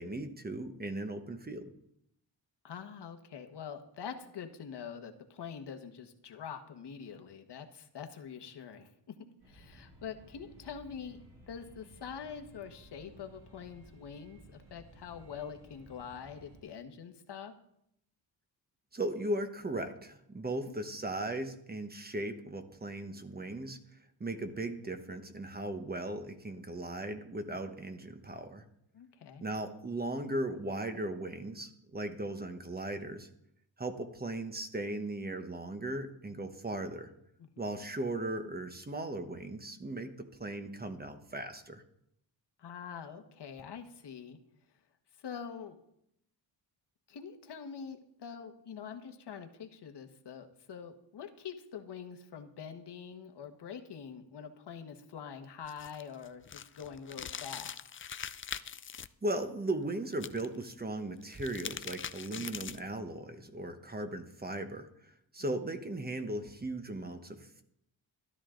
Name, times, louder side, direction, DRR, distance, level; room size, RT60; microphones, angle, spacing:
voice 1, 0.0-1.7 18.9-23.8 24.2-28.6 29.4-33.3 33.8-37.1 37.6-41.8 59.2-67.6, right 1 dB, 20° right, 7 dB, 1.1 m, -37 dB
voice 2, 2.6-9.2 9.5-11.2 11.5-17.5 20.6-20.7 28.9-29.5 37.4-37.5 37.8-37.9 42.6-44.4 45.2-45.8 47.1-57.8 62.3-62.5 65.4-65.5, left 7 dB, 65° left, 6 dB, 1.4 m, -45 dB
sound 1, 9.4-16.6, right 1 dB, 60° right, 4.5 m, -57 dB
sound 2, 55.6-59.1 60.1-60.7 61.2-62.9, left 8 dB, 30° left, 0.4 m, -42 dB
13.5 x 12.5 x 3.8 m, 0.75 s
wide cardioid pair, 115°, 44 cm